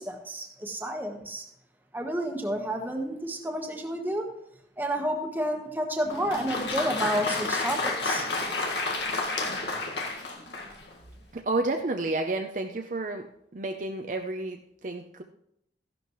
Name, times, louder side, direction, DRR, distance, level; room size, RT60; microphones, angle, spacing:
voice 1, 0.0-1.4 1.9-4.3 4.8-8.3, right 1 dB, 10° right, 3 dB, 1.2 m, -30 dB
Applause, 6.0-10.9, left 3 dB, 85° left, 1.8 m, -30 dB
voice 2, 11.3-15.2, right 2 dB, 45° right, 4 dB, 0.6 m, -31 dB
14.5 x 11.0 x 3.1 m, 0.75 s
head